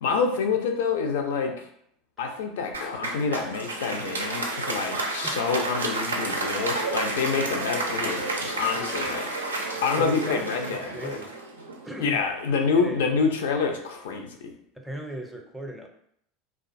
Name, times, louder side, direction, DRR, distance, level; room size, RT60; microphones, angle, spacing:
voice 1, 0.0-1.6 2.2-11.2 12.0-14.4, left 5 dB, 65° left, 4 dB, 0.4 m, -27 dB
Applause, 2.7-12.1, right 2 dB, 80° right, 0.3 m, -31 dB
voice 2, 8.8-9.1 9.9-10.4 10.7-11.4 11.8-12.2 12.8-13.0 14.7-15.9, right 1 dB, ahead, 1 dB, 0.5 m, -38 dB
2.4 x 2.3 x 2.5 m, 0.69 s
figure-of-eight pair, 75°, 0 cm